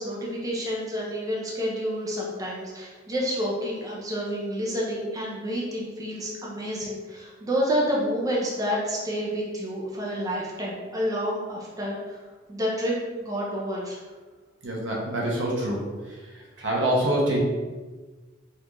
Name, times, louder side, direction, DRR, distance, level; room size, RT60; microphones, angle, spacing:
voice 1, 0.0-14.0, equal, 20° right, -4 dB, 0.6 m, -29 dB
voice 2, 14.6-15.9 16.6-17.4, right 1 dB, 75° right, -3 dB, 1.0 m, -25 dB
4.2 x 2.6 x 3.0 m, 1.3 s
head